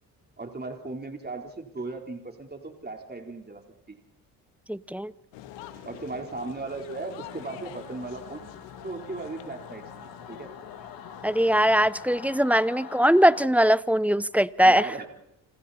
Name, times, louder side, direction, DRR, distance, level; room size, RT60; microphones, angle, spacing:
voice 1, 0.4-3.6 3.9-4.0 5.8-8.5 8.8-10.5 14.6-15.1, right 3 dB, 20° right, 3 dB, 4.1 m, -37 dB
voice 2, 4.7-5.1 11.2-14.9, equal, 5° right, 18 dB, 0.9 m, -21 dB
sound 1, 5.3-12.5, left 11 dB, 85° left, 1.9 m, -46 dB
Singing / Musical instrument, 7.2-13.5, left 6 dB, 55° left, 2.9 m, -45 dB
29.5 x 27.5 x 4.3 m, 0.82 s
supercardioid pair, 55°, 43 cm